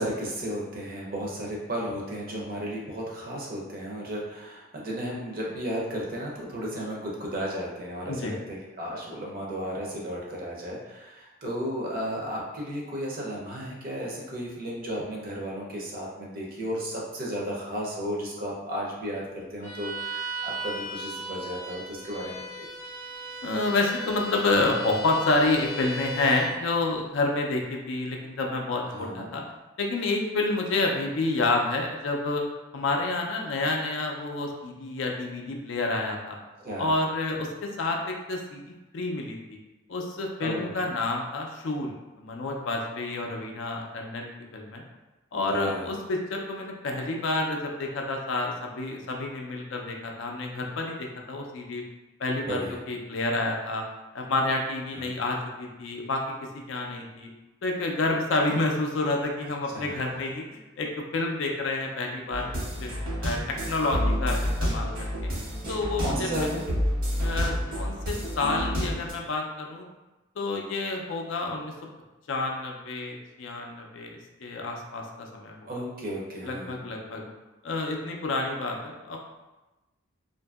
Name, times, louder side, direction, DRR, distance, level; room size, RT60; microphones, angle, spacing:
voice 1, 0.0-22.7 28.9-29.3 36.6-36.9 40.4-40.8 45.5-45.9 52.5-52.8 54.9-55.1 59.7-60.2 66.0-66.7 75.6-76.8, equal, 40° right, -3 dB, 0.6 m, -34 dB
Bowed string instrument, 19.6-26.6, right 1 dB, 15° left, 0.5 m, -37 dB
voice 2, 23.4-29.4 29.8-32.4 32.7-36.4 36.8-39.6 39.9-44.8 45.3-51.8 52.2-53.8 54.1-56.2 56.7-57.3 57.6-62.5 62.8-62.9 63.2-65.3 65.7-66.5 67.2-69.9 70.4-71.7 72.3-75.7 76.4-77.3 77.6-79.2, left 2 dB, 60° left, 1 dB, 0.4 m, -29 dB
sound 1, 62.3-69.1, equal, 85° right, 1.0 m, -29 dB
2.6 x 2.5 x 2.3 m, 1.1 s
head